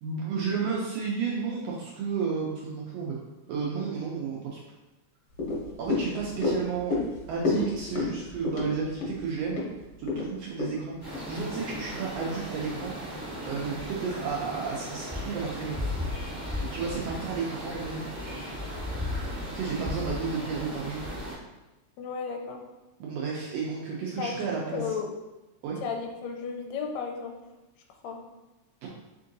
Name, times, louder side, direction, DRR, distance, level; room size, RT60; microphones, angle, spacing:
voice 1, 0.0-3.2 3.5-4.6 5.8-7.0 7.3-9.6 10.0-12.9 13.5-15.8 16.5-18.1 19.5-21.0 23.0-24.9 25.6-25.8 28.8-28.9, right 5 dB, 75° right, -3 dB, 1.5 m, -32 dB
sound 1, 5.3-11.8 12.2-12.3, left 3 dB, 65° left, 1.8 m, -32 dB
sound 2, 11.0-21.3, left 1 dB, 30° right, 0.5 m, -36 dB
voice 2, 22.0-22.6 24.2-25.1 25.8-27.4 28.0-28.2, left 5 dB, 80° left, 2 dB, 1.8 m, -34 dB
4.4 x 3.7 x 2.6 m, 1.0 s
omnidirectional pair, 3.3 m